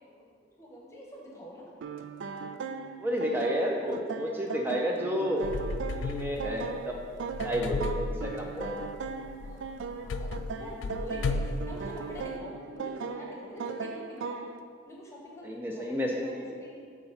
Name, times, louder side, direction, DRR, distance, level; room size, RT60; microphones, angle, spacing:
voice 1, 0.6-1.7 9.4-14.4 14.9-16.8, left 1 dB, 15° left, -3 dB, 1.0 m, -45 dB
sound 1, 1.8-14.6, right 5 dB, 85° right, 0.4 m, -38 dB
voice 2, 3.0-5.5 5.9-7.0 7.4-8.8 15.4-16.5, equal, 10° right, 0 dB, 0.4 m, -31 dB
sound 2, 5.4-12.3, left 3 dB, 80° left, 0.3 m, -35 dB
8.0 x 2.9 x 5.6 m, 2.2 s
head